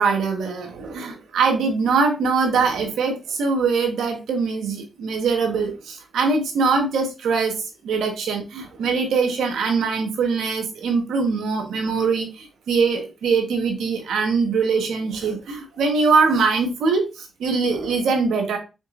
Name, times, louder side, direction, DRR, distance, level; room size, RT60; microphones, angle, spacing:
voice 1, 0.0-7.6 7.8-18.6, right 4 dB, 85° right, 4 dB, 1.1 m, -22 dB
5.1 x 4.0 x 2.4 m, 0.28 s
cardioid pair, 60°, 0 cm